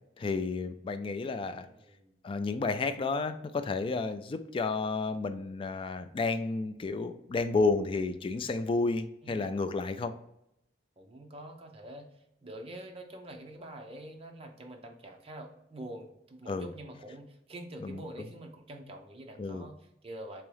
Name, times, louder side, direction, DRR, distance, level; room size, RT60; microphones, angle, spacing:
voice 1, 0.2-1.7 2.2-10.1 16.5-16.7 17.8-18.0 19.4-19.7, left 3 dB, 30° left, 9 dB, 0.3 m, -31 dB
voice 2, 1.6-2.2 9.2-9.6 11.0-12.1 12.4-20.4, right 1 dB, 35° right, 2 dB, 0.6 m, -46 dB
3.6 x 3.0 x 3.2 m, 0.80 s
head